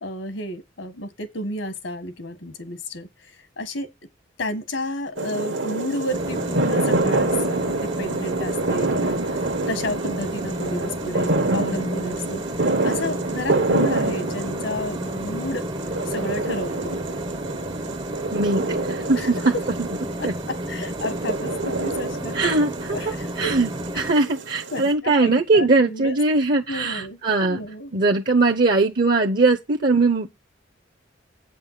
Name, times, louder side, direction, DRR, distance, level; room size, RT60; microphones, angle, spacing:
voice 1, 0.0-3.9 4.4-15.7 16.0-17.0 19.1-19.7 20.2-22.4 22.9-23.6 23.9-24.2 24.7-26.2 26.7-28.1, left 1 dB, 75° left, 1.5 m, -32 dB
sound 1, 5.2-24.9, right 2 dB, 70° right, 1.4 m, -27 dB
sound 2, 6.1-24.1, right 1 dB, 25° right, 0.7 m, -32 dB
voice 2, 18.3-19.5 20.2-20.3 22.3-23.0 23.4-27.6 27.9-30.3, right 3 dB, 50° right, 0.9 m, -20 dB
8.6 x 5.5 x 5.9 m
head